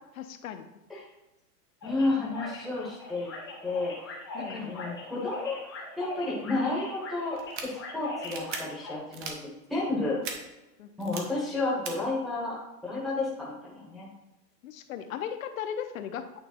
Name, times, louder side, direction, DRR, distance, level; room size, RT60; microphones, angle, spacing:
voice 1, 0.1-0.7 4.3-4.8 10.8-11.1 14.6-16.4, left 9 dB, 55° left, 9 dB, 0.8 m, -37 dB
sound 1, 1.8-9.0, left 2 dB, 15° left, 0.4 m, -41 dB
voice 2, 1.8-3.3 3.6-3.9 4.5-5.6 6.0-9.3 9.7-10.2 11.0-12.6 12.8-14.1, left 2 dB, ahead, -6 dB, 1.0 m, -31 dB
sound 2, 7.4-7.6 8.2-8.6 9.1-9.3 10.2-10.3 11.0-11.2 11.8-11.9, right 6 dB, 30° right, 0.8 m, -37 dB
8.8 x 3.3 x 4.3 m, 1.0 s
hypercardioid pair, 160°, 49 cm